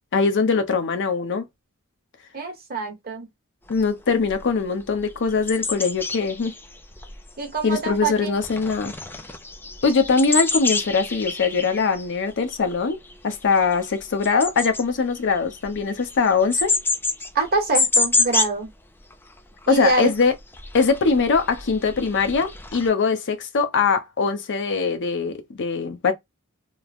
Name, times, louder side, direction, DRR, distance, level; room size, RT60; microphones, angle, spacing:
voice 1, 0.1-1.4 3.7-6.5 7.6-8.9 9.8-13.0 13.2-16.8 19.7-20.3 20.7-26.1, left 4 dB, 55° left, 0.6 m, -22 dB
voice 2, 2.3-3.3 7.4-8.3 17.3-18.7 19.7-20.1, right 3 dB, 45° right, 1.2 m, -25 dB
sound 1, 3.7-3.8 4.2-4.4 4.8-8.1 8.4-18.6 19.0-19.1 19.4-22.9, left 3 dB, 10° left, 0.4 m, -28 dB
3.1 x 2.0 x 2.4 m
head